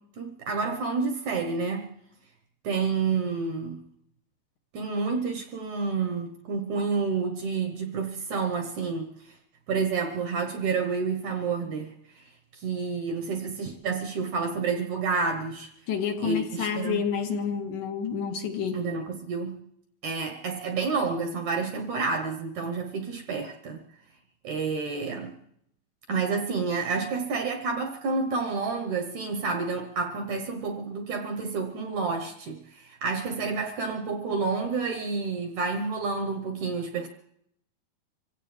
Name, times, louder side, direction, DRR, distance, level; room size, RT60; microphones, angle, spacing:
voice 1, 0.2-1.9 2.6-3.8 4.7-9.3 9.7-15.7 16.2-17.0 18.7-19.6 20.0-23.8 24.4-25.4 26.1-37.1, right 4 dB, 65° right, 3 dB, 2.0 m, -29 dB
voice 2, 15.9-18.8, left 7 dB, 65° left, 3 dB, 2.6 m, -29 dB
25.5 x 16.5 x 3.3 m, 0.72 s
omnidirectional pair, 4.4 m